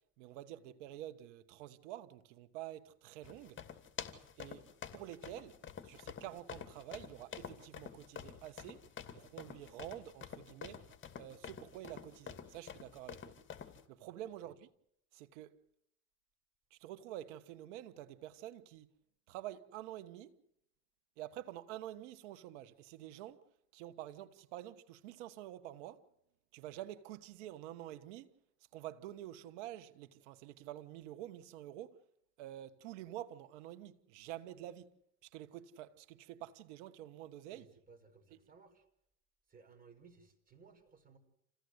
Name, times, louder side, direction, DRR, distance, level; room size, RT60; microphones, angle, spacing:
voice 1, 0.2-3.6 4.4-4.7 4.9-8.8 9.1-10.8 11.1-13.4 13.9-14.7 15.1-15.5 16.7-18.9 19.3-20.4 21.2-23.4 23.7-26.1 26.5-28.3 28.7-32.0 32.4-34.9 35.2-37.7 38.3-38.4, right 13 dB, 90° right, 1.4 m, -48 dB
sound 1, 3.2-13.8, left 8 dB, 35° left, 2.6 m, -49 dB
voice 2, 37.5-38.8 39.5-41.2, right 5 dB, 25° right, 5.3 m, -61 dB
27.5 x 16.0 x 8.1 m
supercardioid pair, 110°, 35 cm